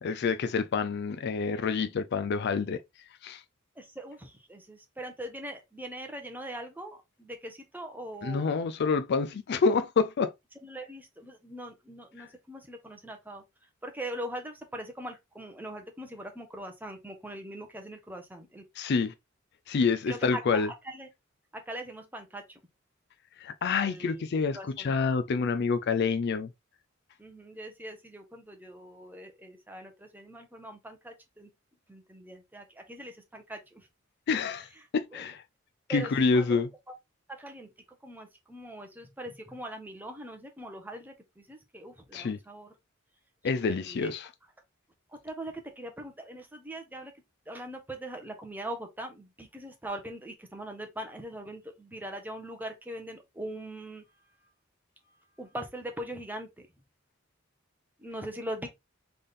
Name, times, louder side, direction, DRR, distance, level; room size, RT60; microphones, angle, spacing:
voice 1, 0.0-2.8 3.2-3.4 8.2-10.3 12.2-12.3 18.8-19.1 19.7-20.7 23.4-26.5 34.3-35.4 35.9-36.7 42.1-42.4 43.4-44.3, left 5 dB, 55° left, 0.4 m, -27 dB
voice 2, 3.8-8.5 10.6-13.4 13.8-18.6 20.1-21.1 21.5-22.6 23.7-24.2 24.5-24.9 27.2-31.5 31.9-33.9 35.1-35.2 35.9-36.9 37.3-37.7 38.0-42.7 43.7-44.1 45.2-47.1 47.5-54.0 55.1-56.5 58.0-58.7, right 1 dB, 10° right, 1.0 m, -41 dB
3.7 x 3.4 x 4.0 m
head